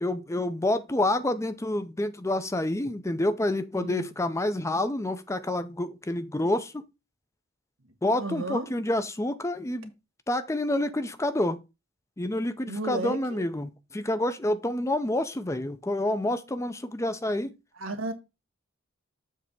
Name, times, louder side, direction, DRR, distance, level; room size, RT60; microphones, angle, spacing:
voice 1, 0.0-6.8 8.0-9.9 10.3-11.6 12.2-17.5, left 1 dB, 15° left, 0.5 m, -28 dB
voice 2, 8.2-8.7 12.7-13.4 17.8-18.1, right 1 dB, 75° right, 1.5 m, -33 dB
7.3 x 3.4 x 6.1 m
head